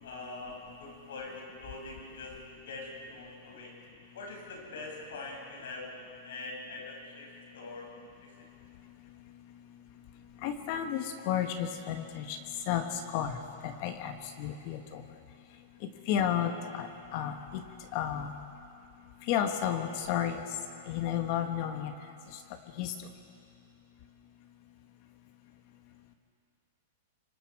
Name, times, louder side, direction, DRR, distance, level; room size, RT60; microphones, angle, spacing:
voice 1, 0.0-2.3 2.7-3.7 4.1-5.9 6.2-7.3 7.5-7.9 8.2-8.3, left 3 dB, 80° left, -1 dB, 6.9 m, -43 dB
voice 2, 10.4-12.4 12.7-12.9 13.1-15.0 16.1-16.9 17.1-17.6 17.9-18.3 19.3-20.4 20.9-21.9 22.8-22.9, left 9 dB, 35° left, 7 dB, 1.2 m, -32 dB
25.5 x 24.0 x 4.8 m, 2.5 s
supercardioid pair, 175°, 0 cm